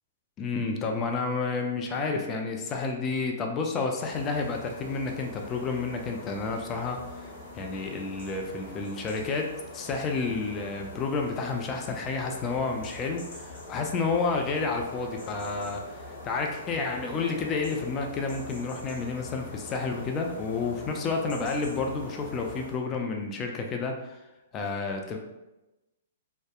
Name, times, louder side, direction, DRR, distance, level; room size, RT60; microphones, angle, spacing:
voice 1, 0.4-7.0 7.5-24.2 24.5-25.2, left 4 dB, 25° left, 2 dB, 0.3 m, -30 dB
sound 1, 4.0-22.8, left 2 dB, 60° left, 0.8 m, -43 dB
2.6 x 2.1 x 2.3 m, 1.0 s
hypercardioid pair, 120°, 0 cm